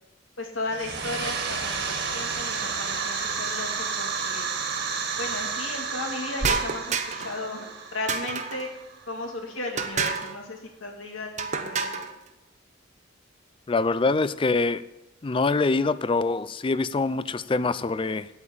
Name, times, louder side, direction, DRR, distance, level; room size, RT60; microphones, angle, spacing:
voice 1, 0.4-4.5 5.2-8.7 9.1-12.1, left 2 dB, 85° left, 2 dB, 2.3 m, -35 dB
sound 1, 0.6-9.2, right 5 dB, 55° right, 2.0 m, -31 dB
sound 2, 6.4-7.4 8.1-8.7 9.8-10.4 11.4-12.1, right 5 dB, 35° right, 0.8 m, -28 dB
voice 2, 13.7-14.8 15.2-18.3, left 3 dB, 25° left, 16 dB, 0.4 m, -24 dB
8.8 x 8.7 x 8.5 m, 1.0 s
head